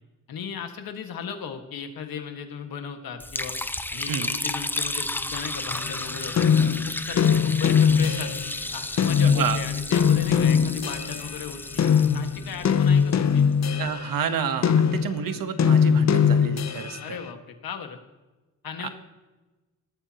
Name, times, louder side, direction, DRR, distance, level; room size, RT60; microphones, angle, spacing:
voice 1, 0.3-3.5 3.9-8.3 8.7-11.8 12.1-13.5 17.0-18.0 18.6-18.9, left 7 dB, 85° left, 5 dB, 1.9 m, -36 dB
Liquid, 3.2-13.4, left 1 dB, 5° left, 0.5 m, -33 dB
sound 1, 5.7-8.6 9.0-11.3 11.8-17.1, left 7 dB, 50° left, 0.8 m, -21 dB
voice 2, 9.2-9.6 13.7-17.2 18.8-18.9, right 7 dB, 70° right, 10 dB, 1.3 m, -30 dB
19.5 x 13.0 x 3.0 m, 1.2 s
wide cardioid pair, 140°, 35 cm